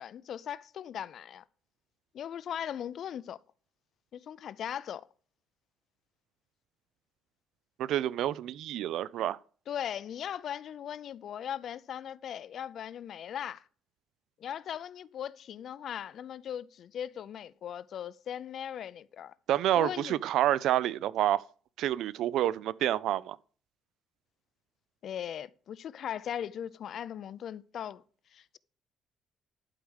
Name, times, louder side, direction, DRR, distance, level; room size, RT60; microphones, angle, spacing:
voice 1, 0.0-1.4 2.1-3.4 4.1-5.1 9.7-13.6 14.4-19.3 19.8-20.2 25.0-28.0 28.3-28.6, left 9 dB, 50° left, 0.4 m, -39 dB
voice 2, 7.8-9.4 19.5-21.4 21.8-23.4, right 12 dB, 70° right, 0.4 m, -28 dB
11.5 x 4.9 x 6.3 m
cardioid pair, 170°, 0 cm